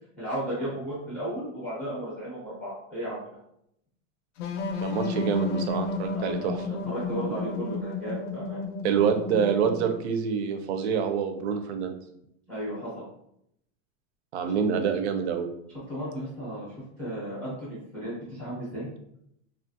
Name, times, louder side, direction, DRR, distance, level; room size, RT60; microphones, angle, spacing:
voice 1, 0.2-3.2 6.1-6.4 6.9-8.6 12.5-13.0 15.9-16.7 17.0-18.9, equal, 5° left, -8 dB, 0.4 m, -34 dB
sound 1, 4.4-10.0, left 3 dB, 70° left, 0.5 m, -32 dB
voice 2, 4.8-6.6 8.8-11.9 14.3-15.5, right 7 dB, 60° right, 7 dB, 0.5 m, -26 dB
3.0 x 2.4 x 2.6 m, 0.75 s
supercardioid pair, 175°, 38 cm